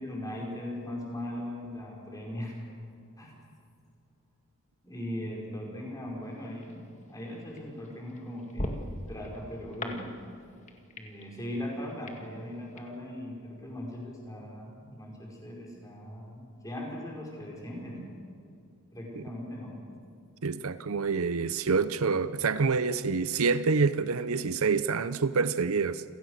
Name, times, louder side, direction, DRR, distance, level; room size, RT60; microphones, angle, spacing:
voice 1, 0.0-2.6 3.2-3.3 4.8-8.8 9.1-10.1 11.0-18.1 18.9-19.8, left 1 dB, 15° left, 5.2 m, -39 dB
sound 1, 6.2-12.8, left 1 dB, 30° left, 2.0 m, -42 dB
voice 2, 20.4-26.0, right 4 dB, 70° right, 0.7 m, -27 dB
29.0 x 16.5 x 6.6 m
head